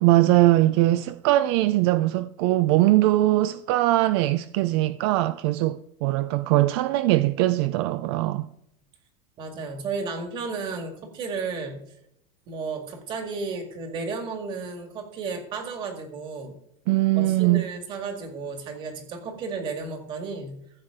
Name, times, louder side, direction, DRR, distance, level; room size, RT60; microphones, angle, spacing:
voice 1, 0.0-8.5 16.9-17.6, right 16 dB, 50° right, 0.4 m, -21 dB
voice 2, 9.4-11.8 12.5-16.6 17.2-20.6, right 4 dB, 30° right, 1.9 m, -33 dB
14.0 x 7.9 x 3.7 m
supercardioid pair, 180°, 17 cm